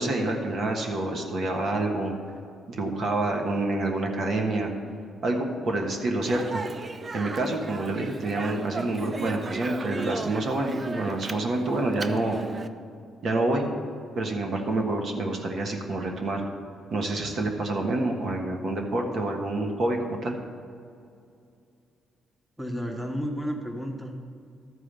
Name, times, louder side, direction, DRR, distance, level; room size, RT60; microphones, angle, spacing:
voice 1, 0.0-2.1 2.7-4.7 5.2-6.6 7.1-12.4 13.2-13.7 14.1-16.4 16.9-20.4, right 2 dB, 60° right, 2 dB, 1.4 m, -27 dB
Speech, 6.2-12.7, right 3 dB, 35° right, 0.5 m, -36 dB
voice 2, 22.6-24.3, equal, ahead, 2 dB, 1.2 m, -32 dB
13.0 x 4.8 x 6.8 m, 2.4 s
cardioid pair, 90°, 0 cm